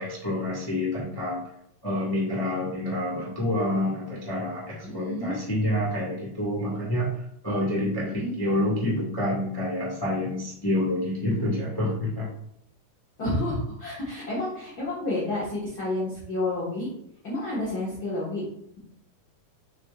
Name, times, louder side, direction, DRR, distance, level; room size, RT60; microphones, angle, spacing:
voice 1, 0.0-1.4 1.8-7.1 7.4-12.3, left 1 dB, 25° left, -5 dB, 0.5 m, -28 dB
voice 2, 4.8-5.3 8.0-8.3 13.2-16.9 17.2-18.4 18.8-18.9, left 2 dB, 40° left, -7 dB, 1.6 m, -30 dB
7.0 x 5.7 x 2.4 m, 0.72 s
omnidirectional pair, 3.7 m